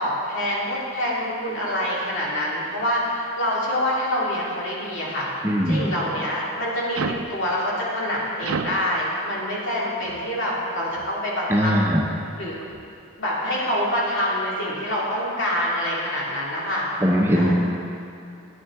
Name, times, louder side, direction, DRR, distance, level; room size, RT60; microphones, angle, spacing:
voice 1, 0.0-5.3 5.7-7.0 7.3-11.7 12.4-12.5 13.2-16.9 17.3-17.5, equal, 70° left, -5 dB, 2.2 m, -26 dB
voice 2, 5.4-5.9 11.5-12.0 17.0-17.5, equal, 10° right, -2 dB, 0.7 m, -20 dB
sound 1, 6.9-7.3 8.4-8.9 10.0-10.2 10.9-11.1 11.7-12.0 12.6-12.8, right 5 dB, 85° right, 0.4 m, -31 dB
9.5 x 9.3 x 3.5 m, 2.7 s
head